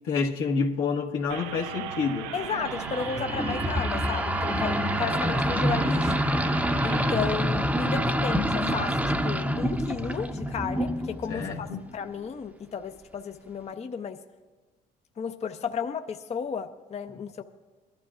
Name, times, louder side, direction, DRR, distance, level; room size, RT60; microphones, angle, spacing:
voice 1, 0.0-2.3 11.3-11.8, left 5 dB, 70° left, 1.2 m, -28 dB
sound 1, 1.3-7.2, right 8 dB, 80° right, 0.6 m, -38 dB
voice 2, 2.3-6.1 6.8-11.7 11.9-14.2 15.2-17.4, left 6 dB, 30° left, 0.6 m, -33 dB
sound 2, 2.5-11.9, equal, 5° right, 0.7 m, -27 dB
21.5 x 12.0 x 2.5 m
hypercardioid pair, 65°, 21 cm